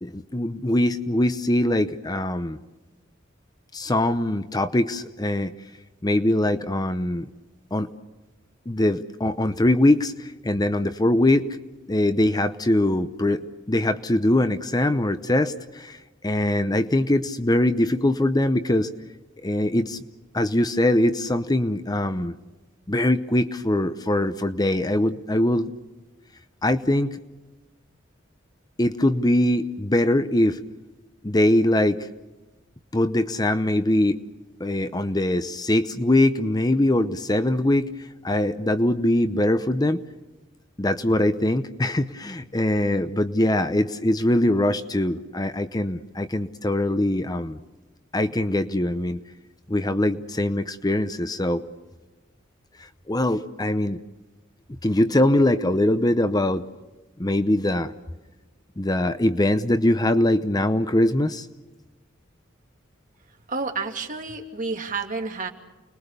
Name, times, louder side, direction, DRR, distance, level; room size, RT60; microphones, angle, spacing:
voice 1, 0.0-2.6 3.7-5.5 6.0-7.3 7.7-7.9 8.7-11.6 11.9-13.4 13.7-16.0 16.2-18.9 19.4-20.0 20.3-22.3 22.9-25.7 26.6-27.2 28.8-30.6 31.2-32.1 32.9-34.2 34.6-37.9 38.2-40.0 40.8-47.6 48.1-49.2 49.7-51.6 53.1-54.0 54.8-56.6 57.2-57.9 58.8-61.5, left 1 dB, 20° left, 11 dB, 0.8 m, -22 dB
voice 2, 63.5-65.5, right 4 dB, 40° right, 3 dB, 2.8 m, -30 dB
30.0 x 21.5 x 6.8 m, 1.1 s
head